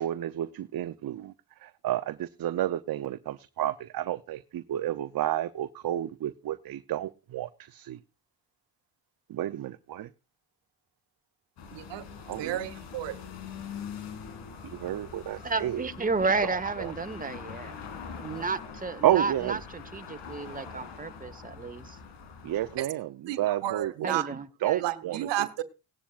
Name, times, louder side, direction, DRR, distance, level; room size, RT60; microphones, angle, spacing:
voice 1, 0.0-1.3 1.6-8.0 9.3-10.1 12.3-12.6 14.6-15.9 16.4-16.9 19.0-19.6 22.4-24.2 24.6-25.3, right 12 dB, 55° right, 0.7 m, -31 dB
sound 1, 11.6-22.8, left 6 dB, 80° left, 2.4 m, -43 dB
voice 2, 11.7-12.1 12.4-13.2 22.8-22.9 23.3-24.4 24.8-25.6, right 13 dB, 80° right, 1.1 m, -32 dB
voice 3, 15.4-17.8 18.2-22.0 24.0-24.8, right 4 dB, 20° right, 1.2 m, -32 dB
17.5 x 11.0 x 2.5 m
supercardioid pair, 55°, 42 cm